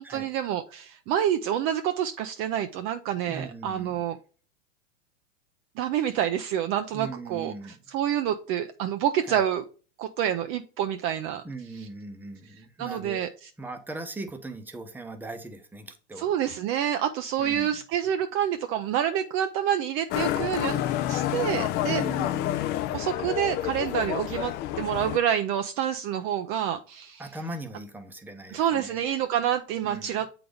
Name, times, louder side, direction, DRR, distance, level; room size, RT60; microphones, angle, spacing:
voice 1, 0.0-4.2 5.8-9.6 10.0-11.4 11.7-11.9 12.8-13.3 16.2-22.0 22.9-27.3 28.5-30.4, right 10 dB, 35° right, 8 dB, 0.5 m, -28 dB
voice 2, 3.3-4.0 6.9-7.8 9.3-9.5 11.4-13.2 13.6-16.3 17.4-17.8 21.9-22.9 27.2-29.2 29.8-30.2, right 2 dB, 5° right, 7 dB, 0.8 m, -39 dB
Motorcycle, 20.1-25.2, left 13 dB, 30° left, 0.4 m, -29 dB
7.6 x 4.0 x 3.3 m, 0.38 s
hypercardioid pair, 110°, 37 cm